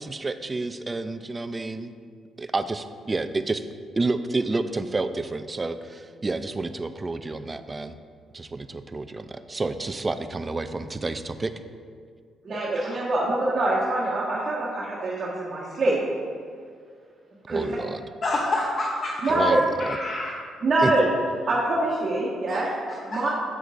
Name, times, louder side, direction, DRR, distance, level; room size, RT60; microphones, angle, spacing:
voice 1, 0.0-1.9 2.4-3.6 4.0-8.0 8.3-11.5 17.5-18.0 19.3-20.0 20.8-20.9, right 3 dB, 25° right, 10 dB, 0.4 m, -29 dB
voice 2, 12.4-16.0 17.5-17.8 19.2-19.6 20.6-21.1 21.5-22.7 23.1-23.3, right 2 dB, 45° right, -8 dB, 1.5 m, -24 dB
voice 3, 18.2-19.3 19.8-20.3 22.5-22.6 22.9-23.2, left 2 dB, 45° left, -1 dB, 0.7 m, -28 dB
8.0 x 7.7 x 2.6 m, 2.1 s
cardioid pair, 90°, 0 cm